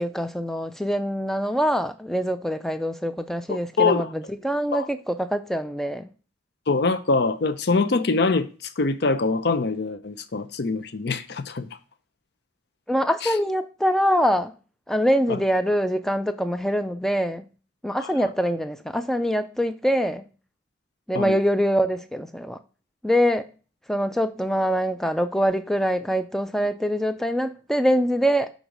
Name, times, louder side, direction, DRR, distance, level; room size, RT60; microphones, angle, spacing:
voice 1, 0.0-6.1 12.9-14.5 14.9-17.4 17.8-20.2 21.1-22.6 23.0-23.5 23.9-28.5, equal, ahead, 0.3 m, -24 dB
voice 2, 3.5-4.1 4.7-4.9 6.7-11.7 13.2-13.3 15.3-15.4 18.0-18.1 21.1-21.4, left 3 dB, 55° left, 0.5 m, -24 dB
6.2 x 4.0 x 5.1 m
head